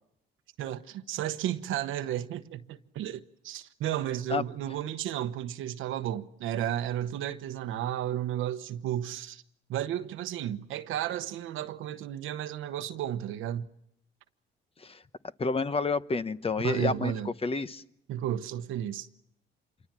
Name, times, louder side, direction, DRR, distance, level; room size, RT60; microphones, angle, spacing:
voice 1, 0.6-9.4 9.7-13.7 16.6-17.3 18.1-19.1, right 11 dB, 85° right, 1.1 m, -33 dB
voice 2, 15.4-17.8, left 4 dB, 30° left, 1.0 m, -29 dB
27.0 x 24.0 x 7.5 m
cardioid pair, 90°, 20 cm